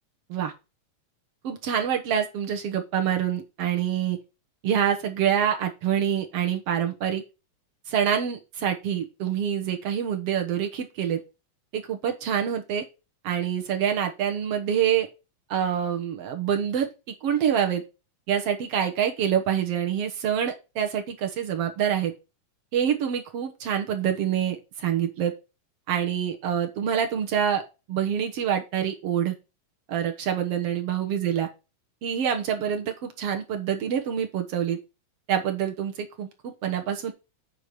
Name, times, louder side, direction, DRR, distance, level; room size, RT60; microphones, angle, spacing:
voice 1, 1.4-4.2 4.6-7.2 7.9-11.2 11.7-12.8 13.2-15.1 15.5-16.9 17.2-17.8 18.3-22.1 22.7-25.3 25.9-27.6 27.9-29.3 29.9-31.5 32.0-34.8 35.3-37.1, right 9 dB, 65° right, 4 dB, 1.6 m, -26 dB
8.2 x 4.7 x 5.2 m, 0.28 s
omnidirectional pair, 4.0 m